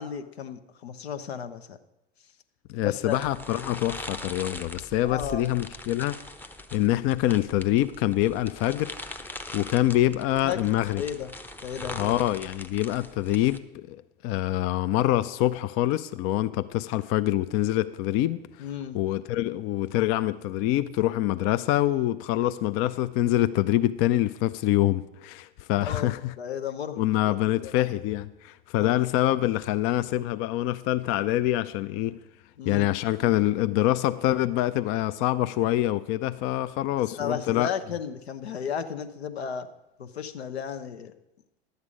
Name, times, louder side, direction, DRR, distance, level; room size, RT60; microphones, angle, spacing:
voice 1, 0.0-1.8 2.8-3.2 5.0-5.5 10.4-11.3 11.6-12.2 18.6-19.0 25.8-27.7 28.8-29.1 32.6-32.9 37.1-39.7 40.0-41.1, left 7 dB, 85° left, 0.8 m, -34 dB
voice 2, 2.7-6.2 6.7-8.9 9.5-11.0 11.9-14.0 14.2-18.4 18.9-26.3 27.0-32.2 32.6-37.7, left 14 dB, 45° left, 0.5 m, -25 dB
sound 1, 3.1-13.6, left 1 dB, 5° left, 0.6 m, -41 dB
11.5 x 8.1 x 5.0 m
hypercardioid pair, 80°, 31 cm